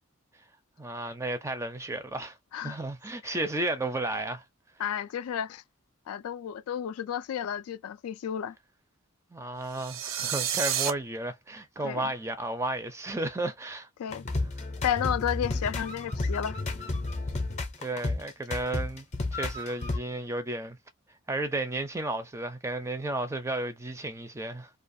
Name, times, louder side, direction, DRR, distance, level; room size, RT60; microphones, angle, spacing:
voice 1, 0.8-4.4 9.3-13.9 17.8-19.1 19.3-20.8 21.3-24.7, right 2 dB, 15° right, 0.4 m, -33 dB
voice 2, 4.8-5.6 6.1-8.6 11.8-12.1 14.0-14.2 14.8-16.6, left 9 dB, 85° left, 0.3 m, -32 dB
sound 1, 9.7-10.9, right 9 dB, 65° right, 0.5 m, -30 dB
sound 2, 14.1-20.0, left 2 dB, 35° left, 0.6 m, -32 dB
2.4 x 2.3 x 2.6 m
head